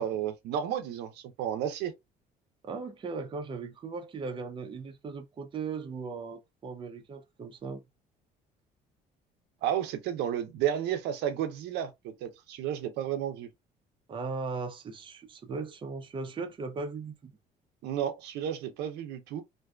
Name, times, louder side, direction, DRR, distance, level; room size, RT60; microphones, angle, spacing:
voice 1, 0.0-1.9 9.6-13.5 17.8-19.4, right 10 dB, 85° right, 0.6 m, -32 dB
voice 2, 2.6-7.8 14.1-17.3, right 4 dB, 30° right, 0.5 m, -38 dB
2.5 x 2.3 x 2.3 m
cardioid pair, 110°, 17 cm